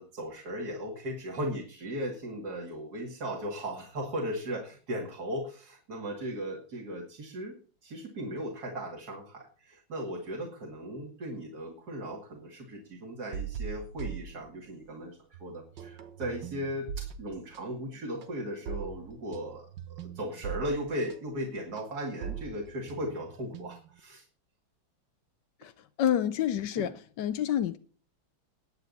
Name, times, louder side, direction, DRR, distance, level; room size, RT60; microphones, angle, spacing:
voice 1, 0.0-7.6 7.8-24.2 26.7-26.9, equal, 50° right, 2.9 m, -37 dB
sound 1, 13.3-15.0 15.3-24.0, right 8 dB, 65° right, 1.7 m, -41 dB
voice 2, 25.6-27.8, left 10 dB, 65° left, 1.3 m, -29 dB
21.0 x 8.6 x 4.1 m
omnidirectional pair, 2.2 m